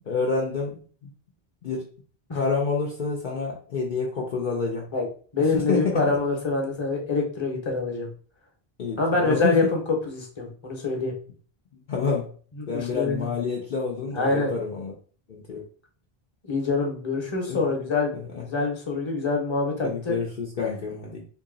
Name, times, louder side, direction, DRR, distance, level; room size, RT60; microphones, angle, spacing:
voice 1, 0.0-1.1 1.6-1.9 2.3-4.9 5.5-6.0 8.8-9.6 11.9-12.3 12.7-14.9 15.3-15.6 17.5-17.8 18.1-18.5 19.8-21.2, left 4 dB, 55° left, -2 dB, 0.7 m, -28 dB
voice 2, 5.3-8.1 9.0-11.1 12.6-13.3 14.1-14.5 16.4-20.2, left 3 dB, 30° left, 1 dB, 0.9 m, -25 dB
2.8 x 2.7 x 3.8 m, 0.43 s
omnidirectional pair, 1.0 m